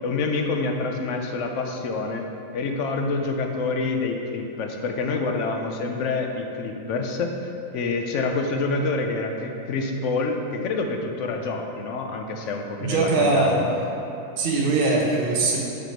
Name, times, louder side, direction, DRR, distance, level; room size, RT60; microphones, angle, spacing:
voice 1, 0.0-2.2 2.5-7.3 7.7-13.7, left 3 dB, 65° left, 3 dB, 0.8 m, -27 dB
voice 2, 12.8-13.6 14.4-15.6, right 3 dB, 45° right, -2 dB, 0.9 m, -21 dB
6.0 x 5.2 x 4.4 m, 3.0 s
omnidirectional pair, 1.6 m